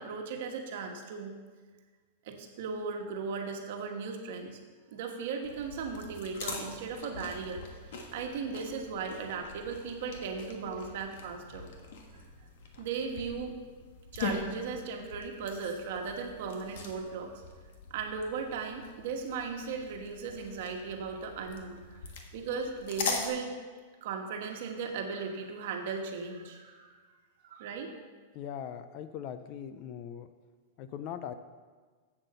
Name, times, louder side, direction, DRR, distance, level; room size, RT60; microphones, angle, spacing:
voice 1, 0.0-1.3 2.2-4.6 4.9-11.7 12.8-13.6 14.1-17.4 17.9-22.0 22.3-23.6 24.0-27.0 27.4-27.9, right 5 dB, 45° right, 3 dB, 1.3 m, -37 dB
sound 1, 5.4-23.3, left 4 dB, 55° left, 1.4 m, -42 dB
voice 2, 28.3-30.3 30.8-31.3, left 9 dB, 30° left, 11 dB, 0.4 m, -40 dB
8.0 x 7.8 x 6.8 m, 1.5 s
supercardioid pair, 180°, 0 cm